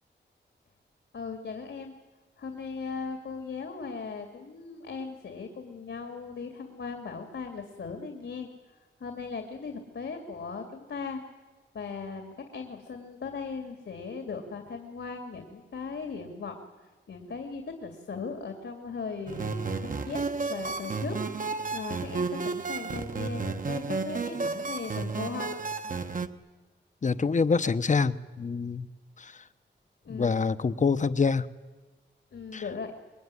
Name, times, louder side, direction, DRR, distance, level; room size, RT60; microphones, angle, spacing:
voice 1, 1.1-1.9 2.4-8.5 9.0-11.2 11.7-16.6 17.1-20.2 20.5-21.2 21.7-25.5 30.0-30.4 32.3-32.9, left 4 dB, 75° left, 5 dB, 2.4 m, -38 dB
sound 1, 19.3-26.3, right 4 dB, 45° right, 1.1 m, -32 dB
voice 2, 27.0-28.9 29.2-29.3 30.1-31.5 32.5-32.6, left 5 dB, 40° left, 13 dB, 0.9 m, -26 dB
25.5 x 22.0 x 9.7 m, 1.2 s
wide cardioid pair, 145°, 19 cm